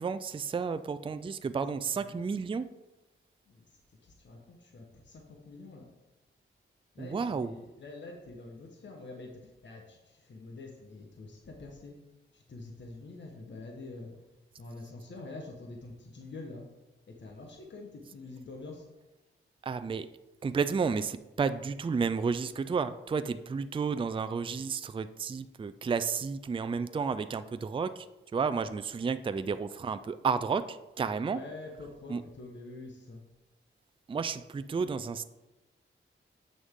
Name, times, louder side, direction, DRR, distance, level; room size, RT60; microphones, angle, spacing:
voice 1, 0.0-2.7 7.0-7.5 19.6-20.1 20.4-28.1 28.3-31.4 32.1-32.2 34.1-35.2, right 5 dB, 25° right, 12 dB, 0.4 m, -32 dB
voice 2, 1.9-2.3 3.5-5.9 6.9-12.0 12.3-14.1 14.6-16.7 17.1-18.9 31.3-33.2, left 2 dB, 60° left, 2 dB, 1.2 m, -46 dB
7.9 x 6.2 x 3.7 m, 1.0 s
cardioid pair, 70°, 21 cm